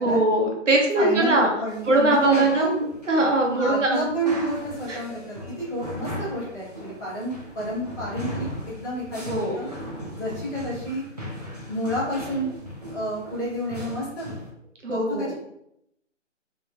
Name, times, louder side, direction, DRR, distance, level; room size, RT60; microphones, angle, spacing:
voice 1, 0.0-1.5 1.8-4.3 4.9-5.0 9.3-9.6 14.8-15.3, right 2 dB, 70° right, 0 dB, 0.9 m, -22 dB
voice 2, 1.0-2.8 3.6-9.7 10.1-11.0 11.7-12.6 12.9-14.3 14.9-15.3, equal, 15° left, -16 dB, 0.8 m, -30 dB
sound 1, 1.7-14.5, equal, 35° right, 0.5 m, -38 dB
3.0 x 2.9 x 2.2 m, 0.78 s
figure-of-eight pair, 165°, 38 cm